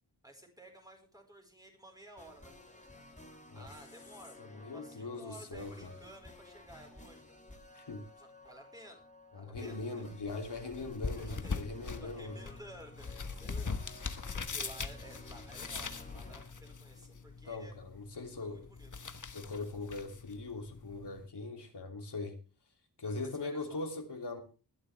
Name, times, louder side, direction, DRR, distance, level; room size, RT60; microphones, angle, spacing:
voice 1, 0.2-3.0 3.5-7.4 8.2-9.0 9.3-10.0 11.2-11.6 12.0-17.7 18.1-18.9 23.2-23.8, right 1 dB, 10° right, 2 dB, 4.7 m, -54 dB
sound 1, 2.2-17.4, left 1 dB, 20° left, 2.5 m, -55 dB
voice 2, 4.4-5.9 7.7-8.1 9.3-12.4 17.4-18.7 19.3-22.4 23.0-24.4, left 3 dB, 75° left, 3 dB, 3.1 m, -41 dB
sound 2, 10.3-21.3, left 4 dB, 45° left, 1.3 m, -42 dB
20.5 x 11.5 x 3.5 m, 0.34 s
wide cardioid pair, 100°, 41 cm